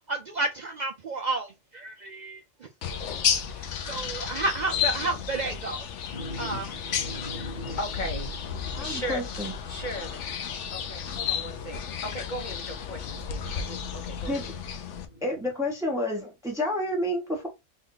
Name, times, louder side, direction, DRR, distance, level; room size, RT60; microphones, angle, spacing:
voice 1, 0.1-2.7 3.5-5.9 6.4-6.7, right 2 dB, 50° right, 0.5 m, -31 dB
sound 1, 2.8-15.1, left 7 dB, 85° left, 1.0 m, -32 dB
voice 2, 6.1-9.3 9.6-14.5 15.0-15.2, left 1 dB, 45° left, 1.0 m, -38 dB
voice 3, 8.8-9.5 14.3-14.4 15.2-17.5, left 1 dB, 5° right, 0.9 m, -29 dB
3.7 x 2.5 x 3.7 m
omnidirectional pair, 1.2 m